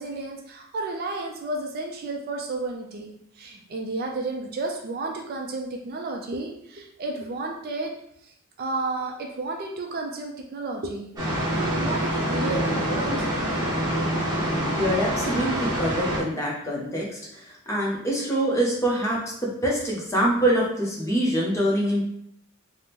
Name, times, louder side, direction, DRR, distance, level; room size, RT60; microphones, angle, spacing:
voice 1, 0.0-7.9 8.2-11.1 11.4-13.4, right 2 dB, 45° right, 2 dB, 0.4 m, -32 dB
sound 1, 11.2-16.2, equal, 20° right, 0.9 m, -26 dB
voice 2, 14.8-22.0, right 1 dB, 15° left, -4 dB, 0.7 m, -25 dB
3.5 x 2.0 x 2.8 m, 0.72 s
head